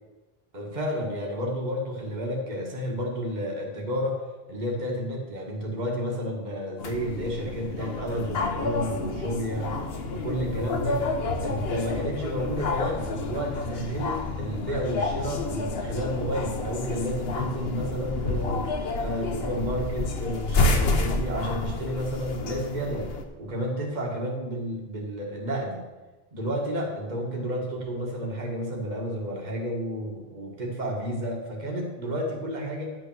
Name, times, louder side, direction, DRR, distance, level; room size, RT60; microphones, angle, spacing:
voice 1, 0.5-4.2 4.5-9.8 10.1-11.1 11.4-18.7 19.0-23.1 23.4-25.8 26.3-33.0, equal, 45° right, 0 dB, 1.7 m, -31 dB
sound 1, 6.8-23.2, left 3 dB, 75° left, 1.2 m, -29 dB
9.9 x 6.9 x 6.2 m, 1.2 s
omnidirectional pair, 1.0 m